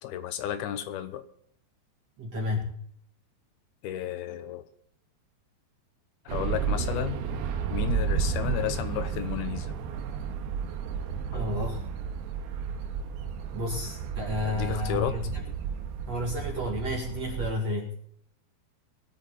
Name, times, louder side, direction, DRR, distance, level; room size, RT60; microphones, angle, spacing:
voice 1, 0.0-1.3 3.8-4.7 6.3-7.2 7.7-9.8 11.3-11.7 14.4-15.2, left 11 dB, 75° left, 11 dB, 2.5 m, -33 dB
voice 2, 2.2-2.8 11.3-11.8 13.5-15.4 16.1-17.9, left 1 dB, 45° right, -1 dB, 2.6 m, -31 dB
sound 1, 6.3-17.5, right 6 dB, 70° right, 3.0 m, -32 dB
23.0 x 8.6 x 4.0 m, 0.69 s
omnidirectional pair, 5.0 m